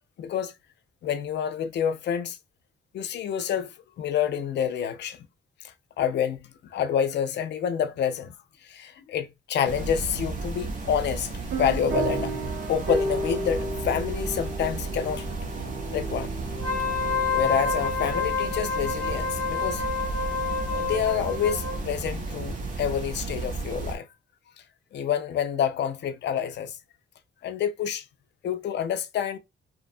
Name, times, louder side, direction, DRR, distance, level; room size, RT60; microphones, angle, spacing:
voice 1, 0.2-0.5 1.0-2.4 2.9-5.3 5.6-8.4 8.6-11.3 11.6-12.3 12.7-15.3 15.9-16.3 17.3-19.9 20.7-24.1 24.9-26.8 27.4-28.0 28.4-29.4, left 8 dB, 60° left, 0.4 m, -28 dB
sound 1, 9.7-24.0, right 3 dB, 40° right, 0.5 m, -34 dB
sound 2, 11.5-19.6, right 2 dB, 70° right, 0.8 m, -34 dB
Wind instrument woodwind instrument, 16.5-21.8, left 4 dB, 5° left, 0.7 m, -28 dB
2.7 x 2.2 x 2.5 m
wide cardioid pair, 170°, 20 cm